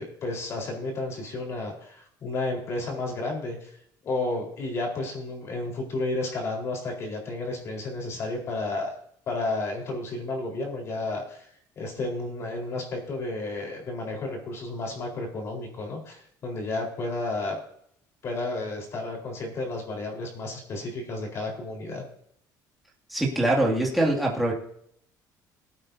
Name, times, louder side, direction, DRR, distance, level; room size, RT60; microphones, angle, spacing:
voice 1, 0.0-3.7 4.0-8.9 9.3-11.4 11.8-17.6 18.2-22.0, left 2 dB, 40° left, 0 dB, 4.2 m, -32 dB
voice 2, 23.1-24.5, right 1 dB, ahead, -3 dB, 2.3 m, -23 dB
21.5 x 8.8 x 2.7 m, 0.68 s
cardioid pair, 160°, 7 cm